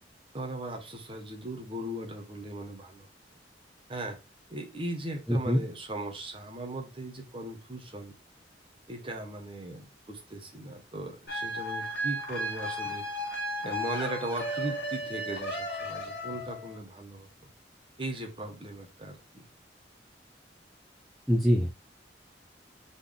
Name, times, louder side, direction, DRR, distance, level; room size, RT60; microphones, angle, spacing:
voice 1, 0.3-3.1 3.9-4.2 4.5-8.1 8.9-13.1 13.6-17.3 18.0-19.4, right 1 dB, 30° right, 1.1 m, -38 dB
voice 2, 5.3-5.6 21.3-21.7, equal, ahead, 0.5 m, -24 dB
sound 1, 11.3-16.8, equal, 60° left, 1.6 m, -34 dB
4.1 x 3.4 x 3.6 m
head